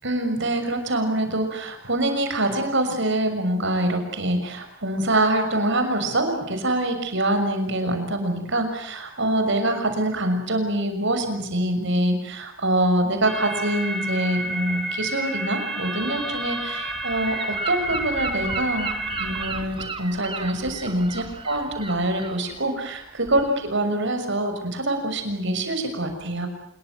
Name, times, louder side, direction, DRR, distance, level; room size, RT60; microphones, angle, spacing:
voice 1, 0.0-18.9 19.2-26.5, right 1 dB, 60° right, 7 dB, 6.3 m, -25 dB
sound 1, 13.2-19.5, right 1 dB, 5° left, 5.9 m, -30 dB
Gull seagull / Wind, 16.4-23.7, right 4 dB, 25° right, 2.5 m, -36 dB
27.5 x 22.5 x 9.4 m, 0.68 s
head